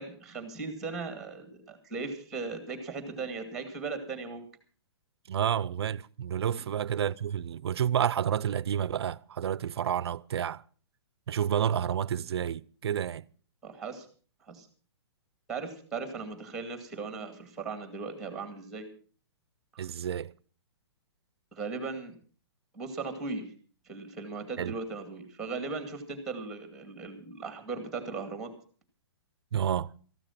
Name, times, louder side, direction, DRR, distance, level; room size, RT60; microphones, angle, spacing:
voice 1, 0.0-4.5 6.5-6.7 13.6-14.1 14.5-14.7 15.5-18.9 21.5-22.2 22.7-23.5 23.9-28.5, right 4 dB, 5° right, 2.3 m, -38 dB
voice 2, 5.3-10.6 11.3-13.2 19.8-20.3 24.6-24.8 29.5-29.9, right 9 dB, 65° right, 0.6 m, -30 dB
14.5 x 12.0 x 5.8 m
hypercardioid pair, 170°, 15 cm